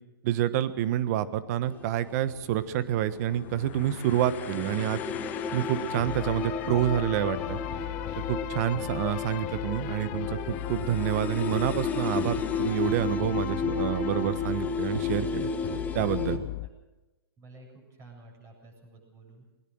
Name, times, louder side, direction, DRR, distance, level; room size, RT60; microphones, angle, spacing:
voice 1, 0.2-5.0 5.5-7.6 8.2-15.5 15.9-16.4, right 12 dB, 45° right, 14 dB, 1.3 m, -28 dB
sound 1, 1.5-16.7, left 17 dB, 35° left, 0.9 m, -37 dB
sound 2, 1.7-2.3 2.9-3.0 3.3-16.4, left 4 dB, 15° left, 1.5 m, -33 dB
voice 2, 17.4-19.4, right 2 dB, 25° right, 1 dB, 7.8 m, -51 dB
20.5 x 20.0 x 6.3 m, 1.1 s
hypercardioid pair, 130°, 12 cm